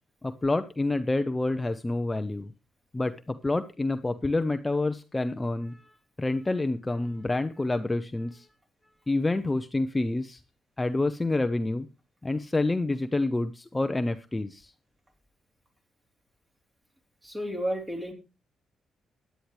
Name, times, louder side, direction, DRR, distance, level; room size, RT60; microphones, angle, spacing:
voice 1, 0.2-2.5 2.9-8.5 9.1-10.4 10.8-11.9 12.2-14.7, left 2 dB, 15° left, 9 dB, 0.6 m, -28 dB
voice 2, 17.2-18.1, equal, 20° right, 2 dB, 3.3 m, -31 dB
16.0 x 10.0 x 3.1 m, 0.30 s
cardioid pair, 110°, 0 cm